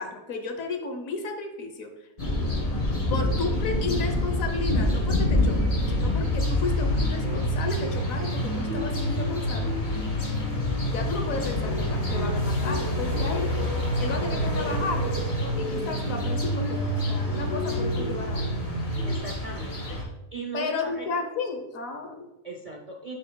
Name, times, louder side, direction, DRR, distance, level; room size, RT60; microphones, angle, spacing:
voice 1, 0.0-1.9 3.1-9.7 10.9-13.5 14.0-15.1 15.4-18.5 20.5-22.3, left 3 dB, 65° left, 5 dB, 1.3 m, -33 dB
sound 1, 2.2-20.0, left 2 dB, 35° left, 1.9 m, -28 dB
sound 2, 4.8-19.2, right 2 dB, 80° right, 2.2 m, -31 dB
voice 2, 19.0-20.0 20.3-21.1 22.4-23.1, right 3 dB, 60° right, 1 dB, 0.3 m, -38 dB
7.9 x 6.4 x 2.2 m, 0.99 s
omnidirectional pair, 1.6 m